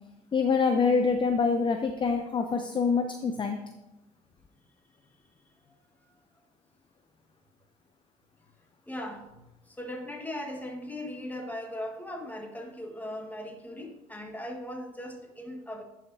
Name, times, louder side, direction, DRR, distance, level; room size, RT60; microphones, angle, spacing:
voice 1, 0.3-3.6, left 5 dB, 30° left, 6 dB, 0.6 m, -25 dB
voice 2, 5.6-6.1 8.9-15.8, left 1 dB, 10° left, 2 dB, 1.5 m, -39 dB
10.5 x 5.0 x 2.7 m, 0.97 s
supercardioid pair, 65°, 16 cm